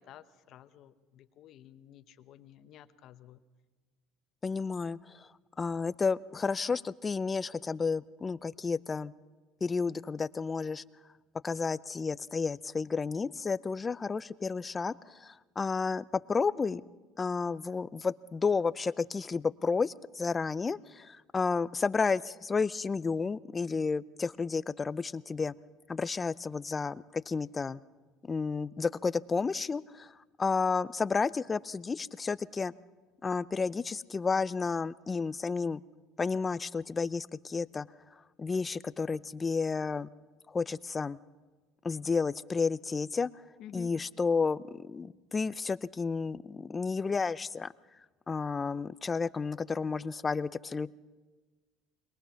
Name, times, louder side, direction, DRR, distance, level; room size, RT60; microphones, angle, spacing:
voice 1, 0.0-3.4 43.6-43.9, left 11 dB, 55° left, 11 dB, 1.1 m, -52 dB
voice 2, 4.4-5.3 5.6-9.1 9.6-10.8 11.4-16.8 17.2-25.5 25.9-27.8 28.3-32.7 33.2-35.8 36.2-37.9 38.4-40.1 40.5-41.2 41.8-43.3 43.7-47.7 48.3-50.9, left 4 dB, 25° left, 18 dB, 0.5 m, -31 dB
22.0 x 22.0 x 5.8 m, 1.3 s
supercardioid pair, 100°, 0 cm